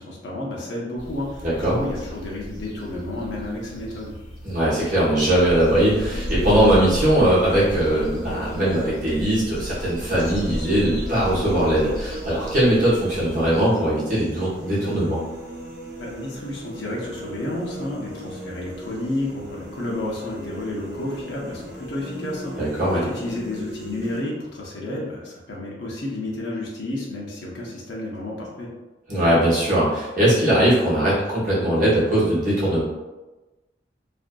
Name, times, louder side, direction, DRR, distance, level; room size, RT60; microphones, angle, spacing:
voice 1, 0.0-4.1 16.0-22.6 22.9-28.7, left 1 dB, 80° left, -3 dB, 0.6 m, -31 dB
sound 1, 1.0-13.6, equal, 50° left, 1.1 m, -34 dB
voice 2, 1.4-1.8 4.4-15.2 22.6-23.0 29.1-32.8, right 1 dB, 45° right, -8 dB, 1.0 m, -20 dB
sound 2, 5.2-24.2, equal, 65° right, 0.6 m, -38 dB
2.6 x 2.5 x 2.2 m, 1.1 s
head